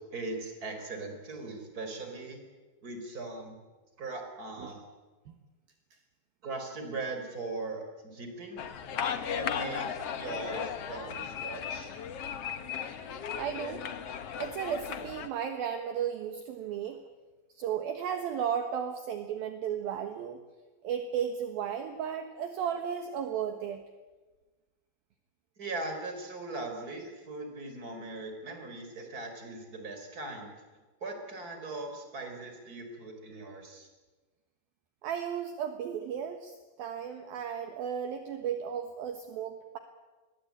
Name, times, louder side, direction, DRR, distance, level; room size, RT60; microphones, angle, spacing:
voice 1, 0.1-2.4 2.8-3.6 4.0-4.9 6.4-8.6 9.3-11.9 25.6-30.5 31.0-33.9, right 2 dB, 20° right, 4 dB, 4.6 m, -39 dB
sound 1, 8.6-15.3, left 7 dB, 75° left, 1.4 m, -36 dB
voice 2, 13.4-13.8 14.4-17.0 17.5-20.4 20.8-23.8 35.0-39.8, right 8 dB, 65° right, 7 dB, 2.9 m, -34 dB
27.5 x 22.0 x 8.7 m, 1.3 s
omnidirectional pair, 5.0 m